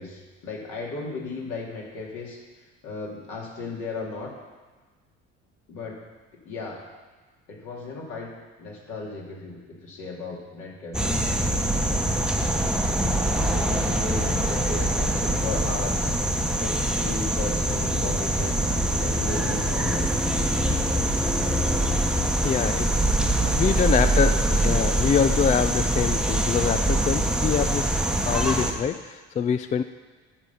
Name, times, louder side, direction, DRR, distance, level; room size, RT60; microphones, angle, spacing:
voice 1, 0.0-2.4 2.8-4.3 5.7-6.0 6.4-6.8 7.5-8.3 8.6-11.3 13.2-16.1 16.5-18.6 19.0-20.1 23.4-24.9, left 3 dB, 60° left, -2 dB, 2.6 m, -36 dB
sound 1, 10.9-28.7, right 1 dB, ahead, 1.0 m, -24 dB
voice 2, 22.4-29.8, left 7 dB, 25° left, 10 dB, 0.3 m, -25 dB
11.5 x 4.2 x 7.1 m, 1.3 s
hypercardioid pair, 65°, 34 cm